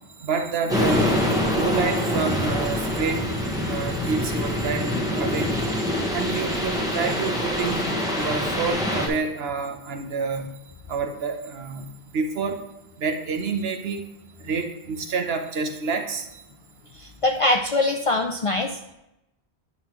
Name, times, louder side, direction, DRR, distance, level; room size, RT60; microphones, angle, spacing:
voice 1, 0.2-3.4 3.6-5.5 6.1-7.8 8.2-10.6 10.9-12.6 13.0-14.1 14.4-16.3, right 5 dB, 70° right, 5 dB, 1.1 m, -28 dB
sound 1, 0.7-9.1, left 1 dB, 5° right, 1.1 m, -25 dB
voice 2, 16.9-18.9, left 2 dB, 50° left, 3 dB, 0.4 m, -23 dB
9.4 x 5.6 x 3.0 m, 0.89 s
omnidirectional pair, 1.1 m